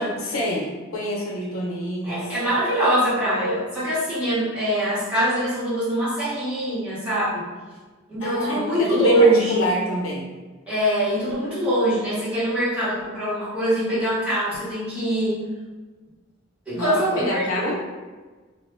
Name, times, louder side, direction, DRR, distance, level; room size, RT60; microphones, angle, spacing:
voice 1, 0.0-2.3 8.2-10.3 16.7-17.7, left 1 dB, 85° left, -2 dB, 0.7 m, -27 dB
voice 2, 2.0-7.4 8.1-9.6 10.7-15.5 16.7-17.7, right 1 dB, 5° right, -13 dB, 1.5 m, -23 dB
2.8 x 2.5 x 3.3 m, 1.3 s
head